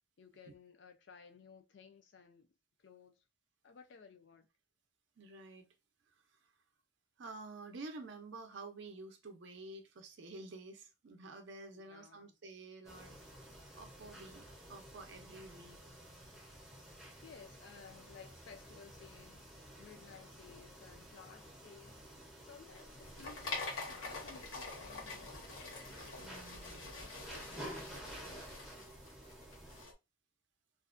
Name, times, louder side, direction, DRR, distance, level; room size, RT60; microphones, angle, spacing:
voice 1, 0.2-2.5 2.8-3.2 3.6-4.5 11.7-12.3 17.2-22.0 22.5-25.5, left 5 dB, 55° left, 0.4 m, -57 dB
voice 2, 5.2-5.7 7.2-13.1 13.8-15.8 26.2-26.9 27.5-28.0, right 3 dB, 55° right, 0.5 m, -50 dB
sound 1, 12.8-29.8, right 1 dB, ahead, 0.5 m, -52 dB
sound 2, 22.7-29.9, left 3 dB, 75° left, 1.0 m, -46 dB
2.4 x 2.2 x 2.4 m
head